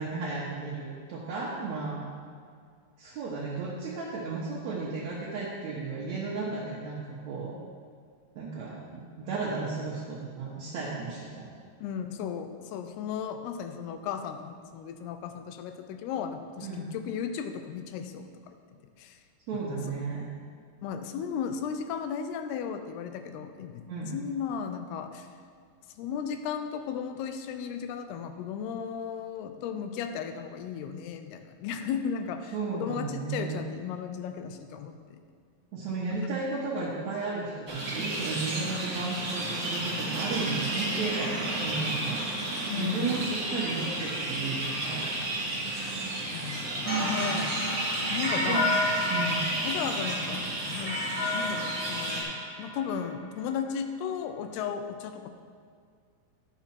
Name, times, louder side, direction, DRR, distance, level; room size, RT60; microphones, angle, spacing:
voice 1, 0.0-2.0 3.0-7.5 8.3-11.5 16.6-16.9 19.5-20.2 23.9-24.2 32.5-33.6 35.7-42.2 42.7-45.1 45.5-45.6 46.7-46.8 47.1-47.2 48.3-48.7 49.1-49.5, right 3 dB, 70° right, -5 dB, 1.7 m, -34 dB
voice 2, 11.8-18.5 19.0-19.2 19.6-20.2 20.8-23.8 24.1-25.3 26.0-35.2 42.7-43.3 46.3-47.6 48.1-48.7 49.4-51.0 51.3-52.3 52.6-55.3, left 7 dB, 85° left, 8 dB, 2.6 m, -35 dB
sound 1, 37.7-52.2, right 2 dB, 55° right, 0.8 m, -32 dB
sound 2, 46.8-53.0, left 1 dB, 30° left, 0.6 m, -31 dB
11.0 x 7.0 x 4.3 m, 2.2 s
omnidirectional pair, 4.5 m